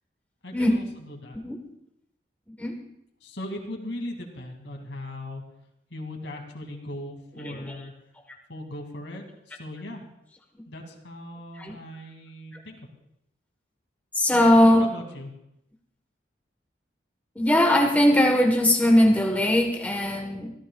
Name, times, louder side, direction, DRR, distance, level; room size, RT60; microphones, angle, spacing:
voice 1, 0.4-1.4 3.2-5.4 5.9-7.9 8.5-10.0 10.7-12.8 14.8-15.3, left 1 dB, 90° left, 2 dB, 2.5 m, -38 dB
voice 2, 7.4-7.8 11.6-11.8 14.1-14.9 17.4-20.5, left 1 dB, 10° left, 2 dB, 1.3 m, -20 dB
25.5 x 14.0 x 2.4 m, 0.80 s
head